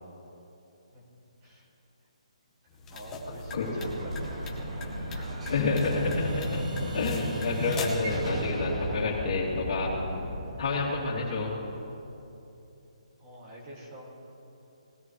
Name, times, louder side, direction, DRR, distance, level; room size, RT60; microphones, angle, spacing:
sound 1, 2.7-8.2, left 1 dB, 10° left, 1.1 m, -41 dB
voice 1, 2.9-5.5 13.2-14.3, equal, 25° right, -2 dB, 2.2 m, -46 dB
Explosion, 3.5-12.1, right 1 dB, 70° right, 3.0 m, -35 dB
voice 2, 5.5-6.6 6.9-9.9 10.6-11.5, left 4 dB, 45° left, -7 dB, 2.6 m, -29 dB
19.0 x 13.0 x 3.2 m, 2.9 s
hypercardioid pair, 165°, 4 cm